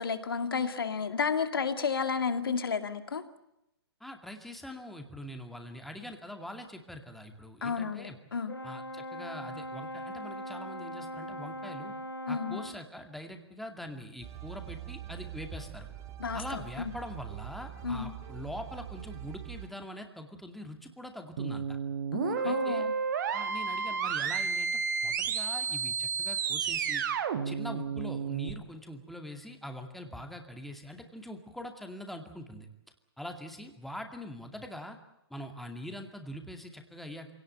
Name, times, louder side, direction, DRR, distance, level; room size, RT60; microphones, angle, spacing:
voice 1, 0.0-3.2 7.6-8.5 12.3-12.6 16.2-16.9 17.8-18.1 22.1-22.9, left 5 dB, 65° left, 9 dB, 2.3 m, -32 dB
voice 2, 4.0-8.2 8.6-11.9 12.3-15.9 16.3-21.8 22.4-22.9 23.3-27.1 27.4-32.7 33.2-35.0 35.3-37.3, left 1 dB, ahead, 4 dB, 2.4 m, -43 dB
Brass instrument, 8.5-12.9, equal, 80° left, 2.3 m, -40 dB
sound 1, 14.2-19.7, right 12 dB, 20° right, 2.2 m, -43 dB
sound 2, 21.4-28.5, right 6 dB, 50° right, 1.9 m, -31 dB
26.0 x 18.0 x 9.1 m, 0.87 s
figure-of-eight pair, 125°, 13 cm